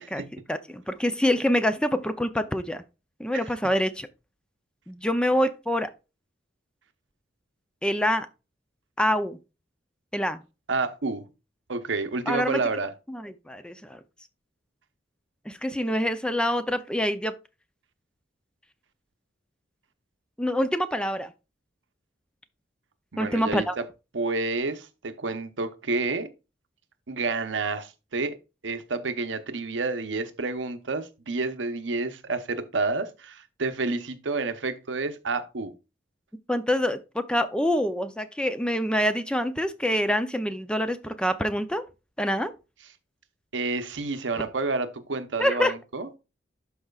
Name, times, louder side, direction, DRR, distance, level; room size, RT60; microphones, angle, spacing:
voice 1, 0.1-2.8 3.2-4.1 4.9-5.9 7.8-8.3 9.0-9.4 10.1-10.4 12.3-12.6 13.1-14.0 15.5-17.4 20.4-21.3 23.2-23.7 36.5-41.8 42.2-42.5 45.4-45.7, equal, 5° left, 0.5 m, -26 dB
voice 2, 10.7-11.2 11.7-12.9 23.1-23.8 24.1-26.3 27.1-28.4 28.6-35.7 43.5-46.2, right 3 dB, 85° right, 0.8 m, -29 dB
12.0 x 4.8 x 2.4 m
head